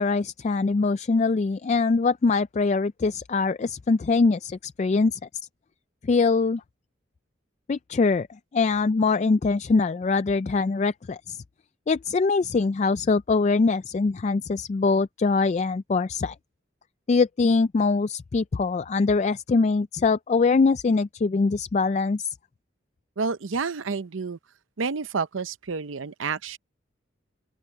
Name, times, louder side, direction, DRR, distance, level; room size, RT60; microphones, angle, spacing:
voice 1, 0.0-5.2 6.1-6.6 7.7-8.3 8.5-11.4 11.9-16.3 17.1-22.3, left 4 dB, 35° left, 0.3 m, -23 dB
voice 2, 23.2-24.4 24.8-26.6, right 4 dB, 85° right, 0.7 m, -29 dB
open air
head